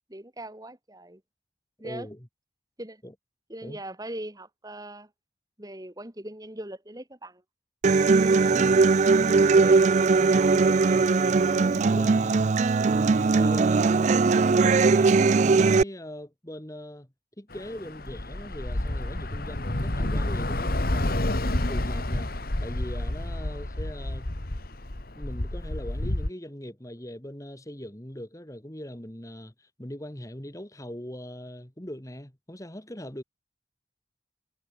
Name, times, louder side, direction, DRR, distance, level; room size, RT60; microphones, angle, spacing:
voice 1, 0.1-1.2 1.8-2.1 2.8-3.0 3.5-5.1 5.6-7.4, right 1 dB, 20° right, 2.3 m, -40 dB
voice 2, 1.8-2.2 3.0-3.1 3.6-3.8 8.3-8.9 9.2-9.8 10.2-14.1 14.6-17.1 17.4-22.3 22.6-24.3 25.2-33.2, equal, 15° left, 1.9 m, -40 dB
Human voice / Acoustic guitar, 7.8-15.8, right 4 dB, 40° right, 0.3 m, -20 dB
Bus / Traffic noise roadway noise, 17.5-26.3, left 1 dB, 50° left, 1.7 m, -29 dB
head